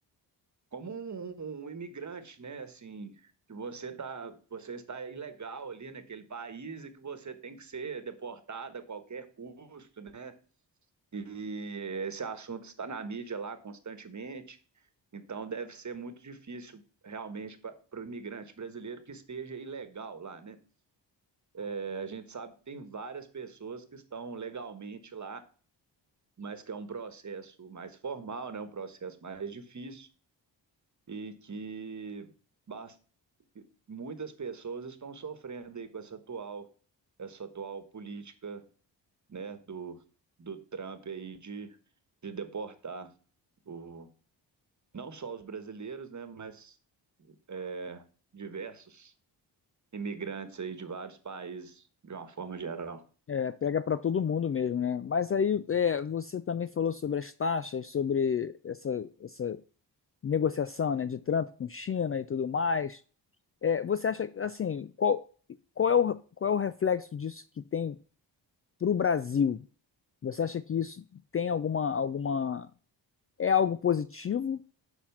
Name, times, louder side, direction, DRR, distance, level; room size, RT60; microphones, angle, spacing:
voice 1, 0.7-10.3 11.1-14.6 15.1-20.6 21.5-25.4 26.4-30.1 31.1-32.3 32.7-33.0 33.5-36.7 37.2-38.6 39.3-40.0 40.4-41.8 42.2-43.1 43.6-44.1 44.9-46.8 47.2-48.0 48.3-49.1 49.9-53.0, right 5 dB, 40° right, 10 dB, 1.3 m, -40 dB
voice 2, 53.3-59.6 60.2-63.0 63.6-65.2 65.8-67.4 67.7-68.0 68.8-69.6 70.2-71.0 71.3-72.7 73.4-74.6, left 7 dB, 35° left, 14 dB, 0.4 m, -29 dB
6.8 x 4.4 x 5.7 m, 0.39 s
cardioid pair, 55°, 45 cm